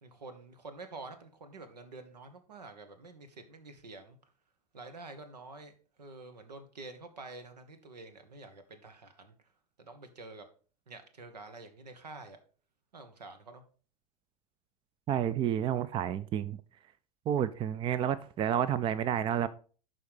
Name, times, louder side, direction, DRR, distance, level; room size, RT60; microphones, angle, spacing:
voice 1, 0.0-4.2 4.7-9.3 9.8-10.5 10.9-12.4 12.9-13.6, right 3 dB, 75° right, 1.5 m, -48 dB
voice 2, 15.1-16.6 17.3-19.5, right 9 dB, 25° right, 0.4 m, -30 dB
11.5 x 4.1 x 4.9 m
figure-of-eight pair, 90°, 21 cm